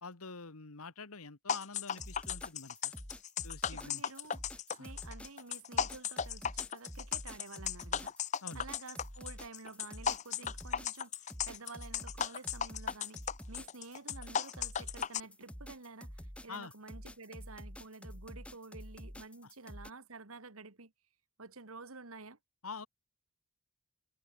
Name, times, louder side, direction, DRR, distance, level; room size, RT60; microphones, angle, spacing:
voice 1, 0.0-2.9 3.4-4.0 4.8-4.9 8.4-8.6 16.5-16.7 19.4-19.5 22.6-22.9, left 4 dB, 90° left, 1.7 m, -46 dB
sound 1, 1.5-15.2, left 8 dB, 35° left, 0.5 m, -36 dB
sound 2, 1.9-19.9, equal, 5° left, 3.7 m, -48 dB
voice 2, 3.7-4.4 4.8-16.1 16.4-20.9 21.4-22.4, right 3 dB, 80° right, 1.9 m, -50 dB
head